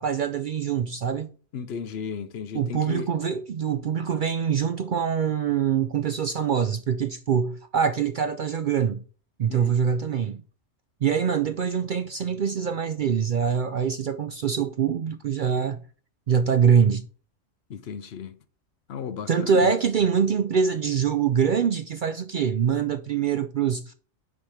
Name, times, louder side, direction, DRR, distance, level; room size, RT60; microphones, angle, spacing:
voice 1, 0.0-1.3 2.5-9.0 9.4-10.4 11.0-15.8 16.3-17.1 19.3-23.9, right 7 dB, 65° right, 0.5 m, -24 dB
voice 2, 1.5-3.1 9.5-9.8 17.7-18.4 18.9-19.7, left 7 dB, 60° left, 0.9 m, -35 dB
6.2 x 4.9 x 5.6 m
omnidirectional pair, 1.3 m